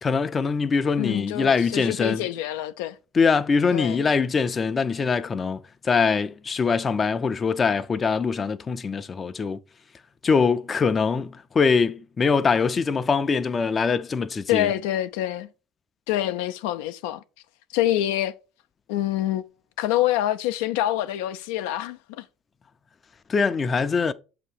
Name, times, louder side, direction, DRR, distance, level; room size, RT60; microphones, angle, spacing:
voice 1, 0.0-2.2 3.1-5.6 5.8-9.6 10.2-14.7 23.3-24.1, left 5 dB, 30° left, 0.4 m, -23 dB
voice 2, 1.0-3.0 3.7-4.0 14.5-15.5 16.1-17.2 17.7-18.3 18.9-19.4 19.8-22.2, left 13 dB, 85° left, 0.4 m, -26 dB
7.2 x 2.8 x 4.9 m
supercardioid pair, 105°, 0 cm